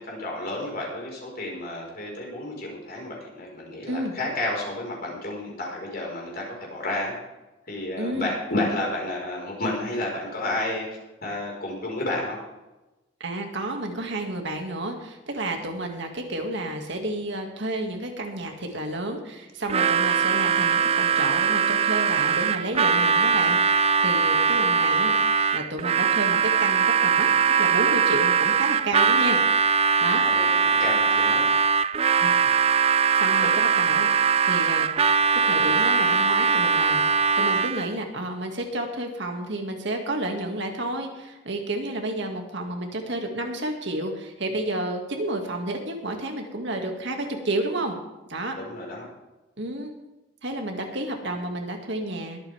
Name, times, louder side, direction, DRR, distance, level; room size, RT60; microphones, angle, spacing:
voice 1, 0.0-7.1 7.7-10.9 11.2-12.4 30.2-31.5 33.4-33.5 48.6-49.1, left 1 dB, 45° left, -2 dB, 4.8 m, -31 dB
voice 2, 8.0-8.3 13.2-25.1 25.5-27.3 27.6-29.4 30.0-30.2 32.2-32.5 33.2-34.9 35.5-48.0 48.3-48.6 49.6-49.9 50.4-52.4, right 1 dB, 60° right, 3 dB, 2.2 m, -31 dB
Harmonica, 19.7-37.9, right 6 dB, 30° right, 0.4 m, -21 dB
22.5 x 9.1 x 3.5 m, 1.0 s
head